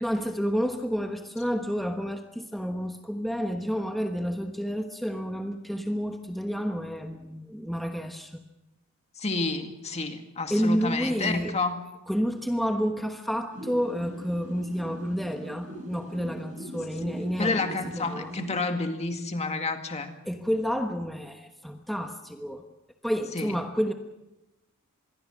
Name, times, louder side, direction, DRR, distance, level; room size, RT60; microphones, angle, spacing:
voice 1, 0.0-8.4 10.5-11.5 12.1-18.4 20.2-22.6 23.0-23.9, equal, ahead, 4 dB, 1.1 m, -30 dB
voice 2, 9.2-11.8 17.4-20.1 23.3-23.5, left 3 dB, 30° left, 6 dB, 2.1 m, -30 dB
sound 1, 13.5-18.5, right 1 dB, 35° right, 6.8 m, -41 dB
26.0 x 22.0 x 6.3 m, 0.98 s
head